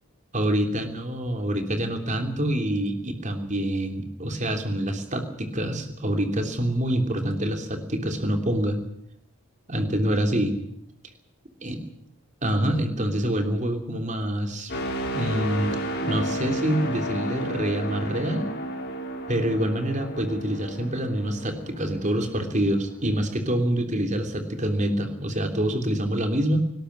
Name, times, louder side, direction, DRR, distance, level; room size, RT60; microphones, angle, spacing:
voice 1, 0.3-8.8 9.7-10.5 11.6-11.8 12.4-14.7 15.1-15.8 16.0-18.5 19.3-26.6, right 1 dB, 35° right, 6 dB, 3.2 m, -26 dB
sound 1, 14.7-22.5 23.0-23.2, right 1 dB, 45° left, 4.2 m, -32 dB
24.5 x 12.5 x 10.0 m, 0.73 s
head